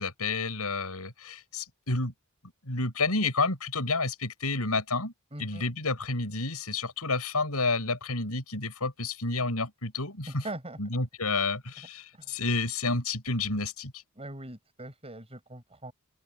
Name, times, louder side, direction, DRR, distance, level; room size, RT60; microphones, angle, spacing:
voice 1, 0.0-2.1 2.7-5.1 5.4-10.5 10.8-13.9, left 3 dB, 85° left, 7.1 m, -30 dB
voice 2, 5.3-5.7 10.3-10.8 12.1-12.4 14.2-15.9, right 1 dB, 25° right, 7.3 m, -41 dB
head